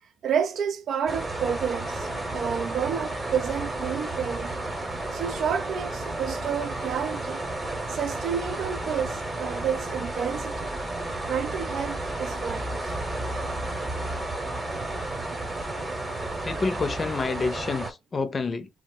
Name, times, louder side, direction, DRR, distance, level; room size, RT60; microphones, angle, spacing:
voice 1, 0.2-4.5 5.1-7.4 7.9-10.7 11.3-12.8, right 7 dB, 65° right, 0.4 m, -30 dB
sound 1, 1.1-17.9, right 2 dB, 20° right, 0.9 m, -32 dB
voice 2, 16.2-18.7, left 4 dB, 35° left, 0.5 m, -29 dB
2.5 x 2.0 x 3.7 m
cardioid pair, 90°, 0 cm